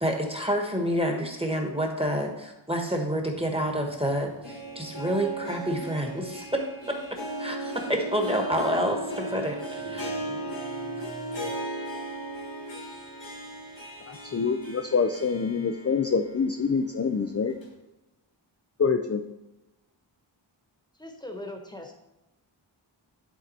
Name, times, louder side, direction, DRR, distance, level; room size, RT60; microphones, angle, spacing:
voice 1, 0.0-6.6 6.9-7.0 7.4-10.1, equal, 10° right, 2 dB, 1.3 m, -28 dB
Guitar, 3.0-6.5 8.0-8.4 8.6-11.6, right 1 dB, 50° right, 2.3 m, -51 dB
Harp, 4.2-16.3 16.7-16.8 17.6-17.7, right 2 dB, 65° left, 1.6 m, -36 dB
voice 2, 14.1-17.5 18.8-19.2, left 5 dB, 30° left, 6 dB, 0.5 m, -26 dB
voice 3, 21.0-21.9, left 1 dB, 10° left, 3 dB, 1.2 m, -39 dB
11.0 x 3.8 x 4.3 m, 1.0 s
wide cardioid pair, 45°, 48 cm